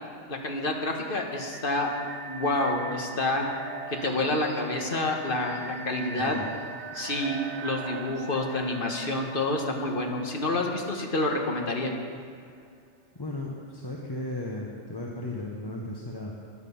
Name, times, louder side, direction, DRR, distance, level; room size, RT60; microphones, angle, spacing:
voice 1, 0.3-1.9 2.3-3.5 3.9-6.3 6.9-11.9, left 2 dB, 50° left, 2 dB, 1.4 m, -28 dB
sound 1, 1.1-11.9, right 4 dB, 70° right, 1.2 m, -41 dB
voice 2, 6.1-6.5 13.2-16.3, left 1 dB, 20° left, -2 dB, 0.9 m, -35 dB
10.5 x 9.0 x 7.0 m, 2.2 s
omnidirectional pair, 1.2 m